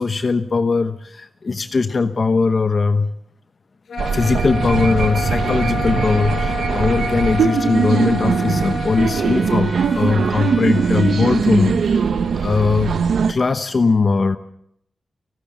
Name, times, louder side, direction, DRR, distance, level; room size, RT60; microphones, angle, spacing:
voice 1, 0.0-3.1 4.1-12.0 12.4-13.0 13.3-14.4, left 4 dB, 40° left, 9 dB, 0.9 m, -19 dB
sound 1, 3.9-9.4, left 3 dB, 80° left, 5.9 m, -28 dB
sound 2, 4.0-13.3, right 6 dB, 85° right, 0.9 m, -21 dB
Trumpet, 9.0-11.5, left 2 dB, 25° left, 2.8 m, -38 dB
30.0 x 13.0 x 7.3 m, 0.74 s
wide cardioid pair, 125°, 0 cm